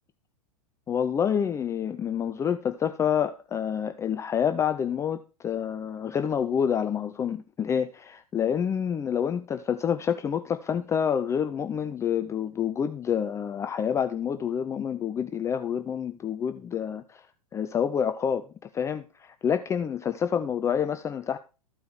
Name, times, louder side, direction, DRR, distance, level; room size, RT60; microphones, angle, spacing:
voice 1, 0.9-17.3 17.5-18.5 18.7-21.4, left 8 dB, 15° left, 9 dB, 0.5 m, -28 dB
14.0 x 4.7 x 6.4 m, 0.33 s
figure-of-eight pair, 100°, 19 cm